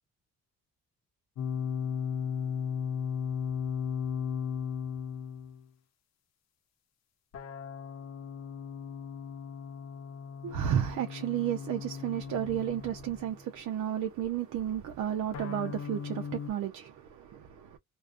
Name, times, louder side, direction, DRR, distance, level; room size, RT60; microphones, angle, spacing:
sound 1, 1.4-5.6 7.3-13.3 15.3-16.5, left 7 dB, 60° left, 0.7 m, -36 dB
voice 1, 10.4-17.8, right 10 dB, 70° right, 0.6 m, -32 dB
2.3 x 2.3 x 2.4 m
cardioid pair, 90°, 30 cm